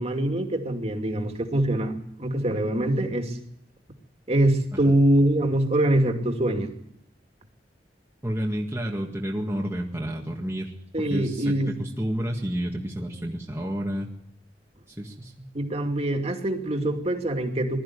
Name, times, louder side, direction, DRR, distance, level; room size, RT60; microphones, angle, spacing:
voice 1, 0.0-3.4 4.3-6.7 10.9-11.7 15.5-17.8, right 1 dB, 35° right, 4 dB, 2.6 m, -24 dB
voice 2, 8.2-14.1 14.9-15.5, equal, 15° right, -2 dB, 1.9 m, -30 dB
21.0 x 13.5 x 9.8 m, 0.76 s
head